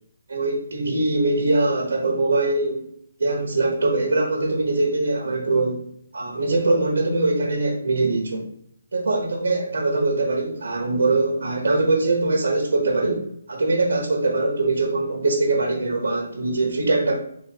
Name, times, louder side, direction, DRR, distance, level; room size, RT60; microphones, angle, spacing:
voice 1, 0.3-2.8 3.2-5.8 6.1-8.5 8.9-17.2, right 2 dB, 85° right, 0 dB, 1.0 m, -22 dB
4.1 x 2.5 x 4.3 m, 0.69 s
hypercardioid pair, 160°, 0 cm